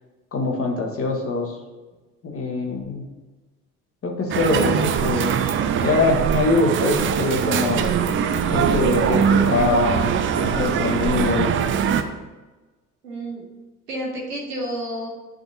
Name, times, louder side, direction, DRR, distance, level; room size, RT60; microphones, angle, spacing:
voice 1, 0.3-1.6 2.2-3.1 4.0-5.4 5.8-7.9 8.5-11.5, left 3 dB, 30° left, 1 dB, 1.5 m, -23 dB
sound 1, 4.3-12.0, right 8 dB, 30° right, 0.4 m, -22 dB
voice 2, 13.0-13.5 13.9-15.1, right 1 dB, 80° right, -2 dB, 1.3 m, -30 dB
10.5 x 3.9 x 2.7 m, 1.2 s
figure-of-eight pair, 55°, 46 cm